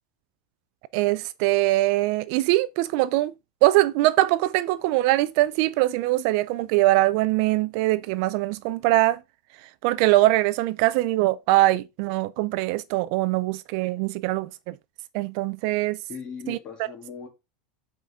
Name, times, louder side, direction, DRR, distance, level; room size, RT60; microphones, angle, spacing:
voice 1, 0.9-3.3 3.6-9.2 9.8-14.7 15.1-16.0 16.5-16.6, right 17 dB, 50° right, 0.4 m, -22 dB
voice 2, 16.1-17.3, left 6 dB, 25° left, 3.0 m, -38 dB
7.9 x 5.0 x 3.6 m
supercardioid pair, 160°, 4 cm